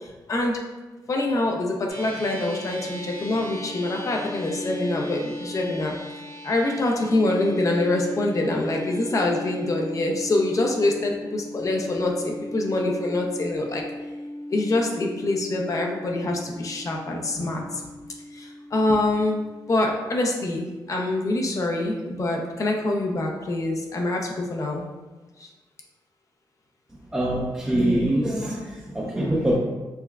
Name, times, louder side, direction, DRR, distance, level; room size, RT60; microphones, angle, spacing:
voice 1, 1.1-5.9 6.4-13.8 14.5-17.6 18.7-19.4 19.7-24.2 24.5-24.8 29.4-29.5, left 2 dB, 40° left, 1 dB, 0.6 m, -25 dB
sound 1, 1.9-20.4, left 1 dB, 75° left, 1.4 m, -37 dB
voice 2, 27.1-29.6, right 1 dB, 10° right, -6 dB, 0.6 m, -24 dB
5.6 x 2.1 x 2.3 m, 1.2 s
cardioid pair, 95°, 8 cm